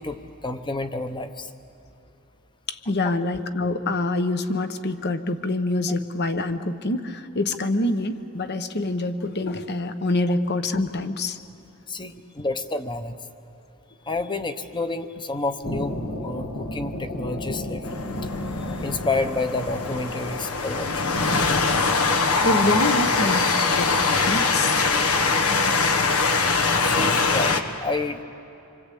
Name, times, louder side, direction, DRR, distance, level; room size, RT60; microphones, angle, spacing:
voice 1, 0.0-1.5 11.9-13.2 14.0-17.9 18.8-21.0 26.8-28.2, left 2 dB, 20° left, 9 dB, 1.0 m, -29 dB
voice 2, 2.7-11.4 22.4-23.9 24.3-24.9, left 2 dB, 50° left, 10 dB, 1.0 m, -26 dB
sound 1, 15.6-25.5, left 1 dB, 65° left, 1.6 m, -35 dB
Train, 17.9-27.6, left 4 dB, 85° left, 1.4 m, -22 dB
26.5 x 24.5 x 8.5 m, 2.8 s
head